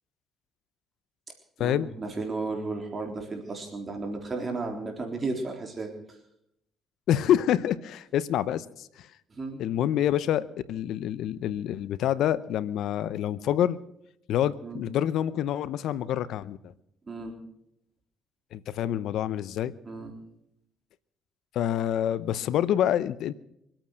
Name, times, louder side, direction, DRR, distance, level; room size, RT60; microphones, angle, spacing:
voice 1, 1.6-5.9 9.3-9.6 14.6-14.8 17.1-17.3 19.8-20.1, right 3 dB, 35° right, 3 dB, 3.7 m, -34 dB
voice 2, 7.1-9.1 9.6-13.8 14.3-16.7 18.5-19.7 21.5-23.3, left 11 dB, 75° left, 17 dB, 0.7 m, -27 dB
24.5 x 9.0 x 6.5 m, 0.76 s
supercardioid pair, 75°, 0 cm